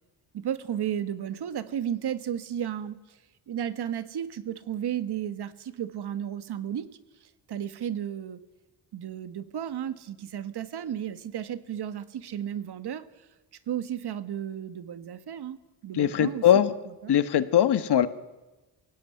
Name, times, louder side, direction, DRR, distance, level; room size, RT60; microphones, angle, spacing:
voice 1, 0.3-3.2 3.5-6.9 7.5-8.4 8.9-13.0 13.7-15.6 15.8-16.6 17.0-17.1, right 9 dB, 65° right, 12 dB, 1.5 m, -33 dB
voice 2, 15.9-16.7 17.1-18.1, left 10 dB, 65° left, 13 dB, 1.3 m, -21 dB
23.0 x 17.0 x 9.5 m, 1.1 s
cardioid pair, 110°, 42 cm